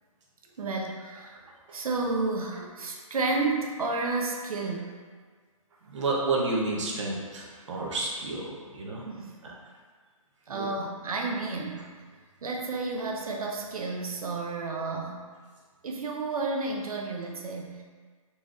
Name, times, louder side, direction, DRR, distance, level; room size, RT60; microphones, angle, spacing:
voice 1, 0.6-1.4 1.7-4.9 5.8-6.0 9.0-9.3 10.5-11.9 12.4-15.2 15.8-17.8, right 3 dB, 85° right, 0 dB, 0.7 m, -31 dB
voice 2, 5.9-8.5 8.7-9.0 10.5-10.6, right 3 dB, 55° right, -3 dB, 0.9 m, -30 dB
4.0 x 3.0 x 2.5 m, 1.5 s
hypercardioid pair, 165°, 18 cm